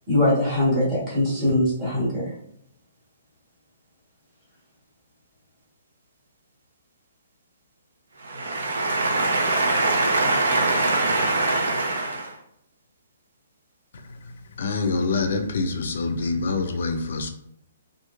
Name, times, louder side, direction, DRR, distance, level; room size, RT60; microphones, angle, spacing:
voice 1, 0.1-2.3, left 1 dB, 15° right, -8 dB, 1.2 m, -22 dB
voice 2, 8.2-12.4, right 2 dB, 80° right, 1 dB, 0.7 m, -23 dB
voice 3, 14.6-17.3, left 3 dB, 55° left, 6 dB, 0.4 m, -25 dB
3.0 x 2.5 x 2.4 m, 0.75 s
hypercardioid pair, 175°, 0 cm